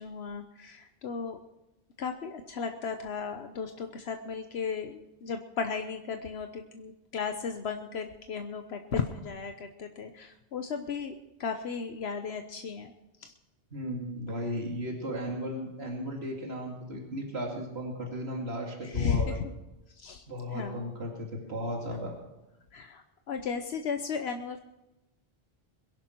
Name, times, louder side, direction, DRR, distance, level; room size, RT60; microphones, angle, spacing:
voice 1, 0.0-1.4 2.0-11.1 11.4-12.9 13.2-13.3 18.8-19.5 19.9-20.2 20.5-21.0 22.7-24.6, left 6 dB, 80° left, 6 dB, 1.2 m, -35 dB
voice 2, 13.7-19.3 20.3-22.2, equal, 85° right, 0 dB, 2.8 m, -35 dB
22.5 x 11.0 x 4.6 m, 0.97 s
omnidirectional pair, 1.1 m